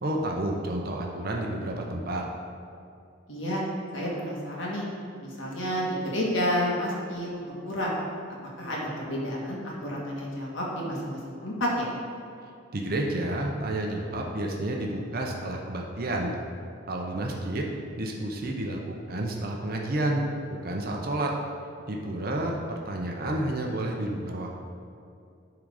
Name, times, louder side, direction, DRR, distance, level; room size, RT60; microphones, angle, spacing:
voice 1, 0.0-2.2 12.7-16.3 16.9-17.7 18.0-20.2 20.5-21.3 21.9-24.5, right 1 dB, 50° right, 0 dB, 0.8 m, -30 dB
voice 2, 3.3-3.6 3.9-4.9 5.2-7.9 8.6-11.9, equal, 75° left, -4 dB, 1.8 m, -30 dB
10.5 x 3.9 x 4.9 m, 2.5 s
head